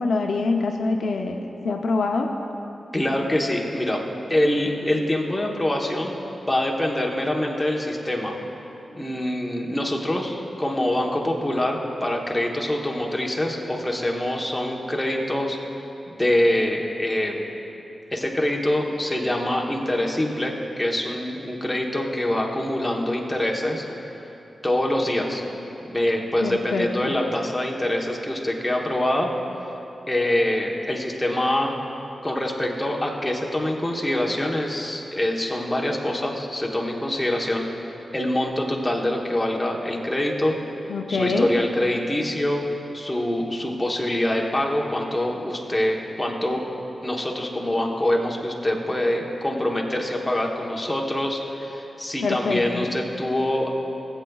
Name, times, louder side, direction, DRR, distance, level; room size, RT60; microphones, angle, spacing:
voice 1, 0.0-2.3 26.4-27.1 40.9-41.5 52.2-52.9, left 3 dB, 80° left, 3 dB, 0.6 m, -25 dB
voice 2, 2.9-4.0 4.3-6.1 6.5-8.4 8.9-15.6 16.1-17.4 18.1-23.8 24.6-25.4 25.8-29.3 30.1-31.7 32.2-37.7 38.1-40.6 41.1-42.7 42.9-46.6 47.0-53.7, left 1 dB, 10° left, -1 dB, 1.0 m, -25 dB
18.5 x 8.0 x 2.3 m, 3.0 s
wide cardioid pair, 115°, 0 cm